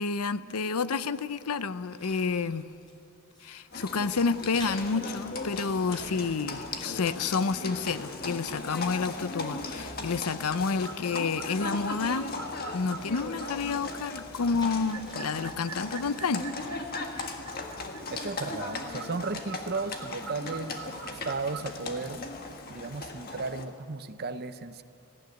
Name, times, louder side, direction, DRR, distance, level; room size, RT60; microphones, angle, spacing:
voice 1, 0.0-2.7 3.4-12.3 12.7-16.8, left 4 dB, 85° left, 15 dB, 0.7 m, -30 dB
sound 1, 1.1-3.0 3.3-3.9 4.4-6.5 6.9-8.8 9.1-9.2 9.6-10.8 11.1-11.9 12.2-12.3 12.8-14.0 14.3-15.2 15.9-16.3 16.8-17.3, equal, 20° left, 5.3 m, -51 dB
Livestock farm animals working animals, 3.7-23.6, left 3 dB, 45° left, 1.6 m, -38 dB
sound 2, 10.7-21.8, right 7 dB, 75° right, 1.2 m, -46 dB
voice 2, 18.1-22.3 22.7-24.8, right 3 dB, 45° right, 11 dB, 0.8 m, -35 dB
18.5 x 16.0 x 9.3 m, 2.8 s
head